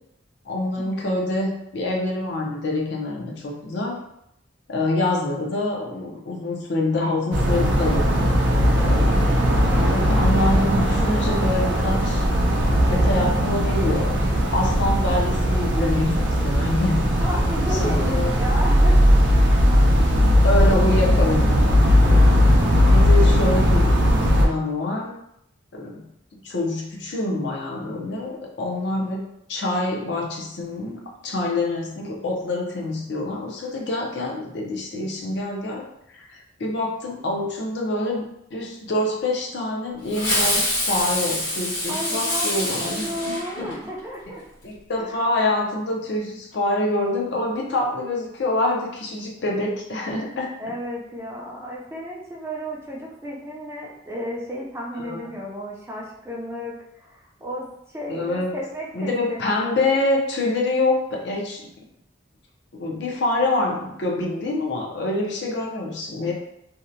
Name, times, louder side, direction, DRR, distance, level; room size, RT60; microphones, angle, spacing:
voice 1, 0.4-4.0 4.7-8.3 8.8-9.2 9.9-12.2 12.9-14.1 14.5-17.1 17.7-18.3 20.4-22.0 22.7-25.1 25.7-26.0 26.3-29.2 29.5-35.9 36.1-38.2 38.5-43.7 44.3-44.4 44.6-50.5 55.0-55.2 58.1-58.5 58.9-61.6 62.8-66.3, left 2 dB, 65° left, -1 dB, 0.5 m, -26 dB
sound 1, 7.3-24.5, equal, 75° right, 0.5 m, -18 dB
voice 2, 17.2-19.5 22.7-23.5 41.9-44.4 45.0-45.2 50.6-60.0 66.2-66.3, equal, 15° right, -3 dB, 0.4 m, -33 dB
Fireworks, 40.1-44.0, left 1 dB, 85° left, 1.3 m, -25 dB
2.6 x 2.1 x 2.6 m, 0.78 s
head